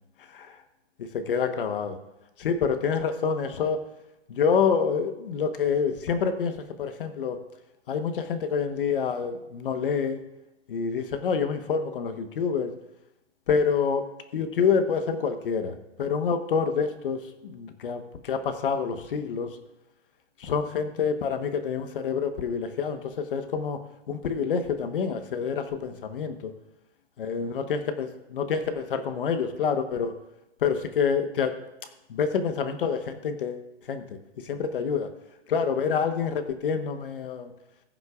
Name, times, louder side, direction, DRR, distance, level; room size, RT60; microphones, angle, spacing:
voice 1, 1.0-2.0 2.4-3.8 4.3-7.4 7.9-10.2 10.7-12.7 13.5-19.6 20.4-23.8 24.1-26.5 27.2-30.1 30.6-31.6 32.1-34.0 34.4-35.1 35.5-37.5, left 6 dB, 50° left, 8 dB, 1.3 m, -27 dB
20.0 x 7.6 x 2.5 m, 0.95 s
hypercardioid pair, 165°, 34 cm